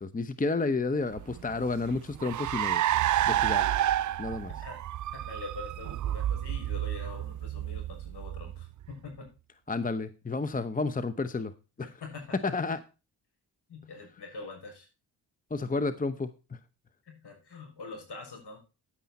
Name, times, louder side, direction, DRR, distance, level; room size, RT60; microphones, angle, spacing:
voice 1, 0.0-2.8 3.3-3.6 4.2-4.5 9.7-11.5 11.8-11.9 12.4-12.8 15.5-16.3, left 3 dB, 20° left, 13 dB, 0.9 m, -31 dB
Car, 1.1-8.9, right 12 dB, 45° right, 0.4 m, -30 dB
voice 2, 5.1-9.3 11.8-12.5 13.7-14.9 17.0-18.6, left 3 dB, 60° left, 2 dB, 6.3 m, -44 dB
10.0 x 9.2 x 4.1 m, 0.31 s
supercardioid pair, 60°, 44 cm